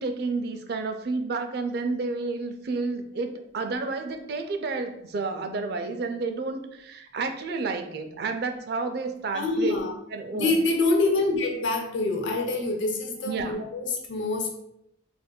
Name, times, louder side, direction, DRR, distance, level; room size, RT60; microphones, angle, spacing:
voice 1, 0.0-9.7 10.1-10.5 13.2-13.6, right 3 dB, 55° right, 7 dB, 0.3 m, -30 dB
voice 2, 9.3-9.9 10.3-14.5, left 2 dB, 65° left, 1 dB, 0.6 m, -26 dB
4.2 x 2.5 x 2.2 m, 0.78 s
head